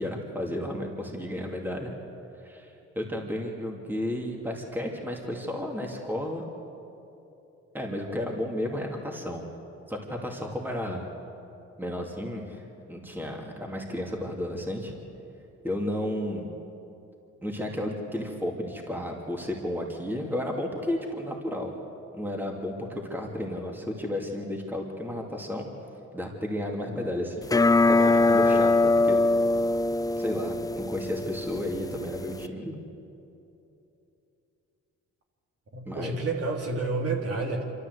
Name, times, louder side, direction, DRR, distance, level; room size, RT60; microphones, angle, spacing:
voice 1, 0.0-1.9 2.4-2.7 3.0-6.4 7.7-9.4 9.9-11.0 11.8-14.9 15.6-16.5 17.4-21.7 22.1-25.7 26.1-27.5 27.9-29.2 30.2-32.8 35.9-36.1, left 1 dB, 5° right, 0 dB, 2.6 m, -32 dB
sound 1, 27.4-32.5, left 2 dB, 10° left, 0.4 m, -23 dB
voice 2, 35.7-37.6, right 3 dB, 50° right, 0 dB, 3.5 m, -29 dB
26.0 x 13.5 x 8.1 m, 2.9 s
cardioid pair, 90°, 30 cm